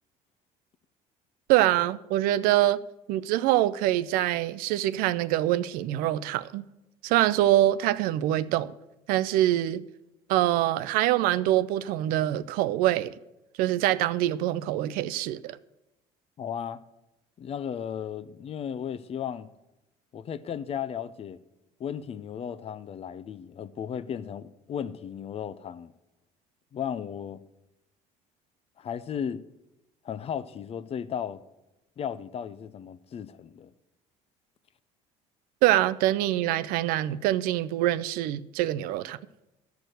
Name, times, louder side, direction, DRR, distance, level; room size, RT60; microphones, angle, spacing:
voice 1, 1.5-2.8 3.1-6.6 7.0-8.7 9.1-9.8 10.3-13.2 13.6-15.6 35.6-39.2, right 14 dB, 80° right, 0.5 m, -24 dB
voice 2, 16.4-16.8 17.4-19.5 20.1-21.4 21.8-25.9 26.7-27.4 28.8-29.4 30.0-31.4 32.0-33.7, left 8 dB, 45° left, 0.6 m, -35 dB
13.5 x 4.7 x 7.9 m
cardioid pair, 100°, 15 cm